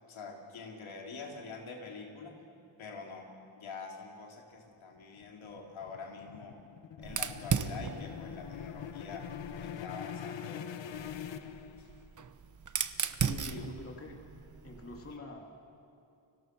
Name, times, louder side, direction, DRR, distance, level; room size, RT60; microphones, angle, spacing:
voice 1, 0.1-2.3 2.8-6.6 7.0-9.3 9.6-10.6 11.8-11.9 13.5-13.6, left 4 dB, 85° left, 0 dB, 3.8 m, -45 dB
sound 1, 5.0-12.2, left 9 dB, 70° left, 1.1 m, -43 dB
Fire, 7.0-9.8 10.9-15.2, right 6 dB, 40° right, 1.0 m, -37 dB
voice 2, 13.3-14.2 14.6-15.7, left 2 dB, 30° left, 1 dB, 2.8 m, -45 dB
30.0 x 24.0 x 6.3 m, 2.5 s
wide cardioid pair, 135°, 46 cm